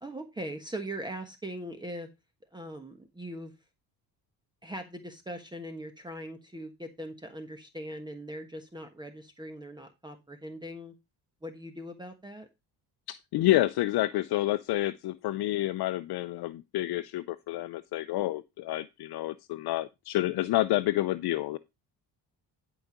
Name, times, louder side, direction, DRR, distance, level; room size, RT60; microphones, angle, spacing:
voice 1, 0.0-2.1 2.5-3.5 4.6-11.0 11.4-12.5, right 1 dB, 10° right, 1.2 m, -40 dB
voice 2, 13.1-21.6, left 15 dB, 70° left, 0.6 m, -29 dB
11.5 x 5.0 x 5.0 m
cardioid pair, 135°, 40 cm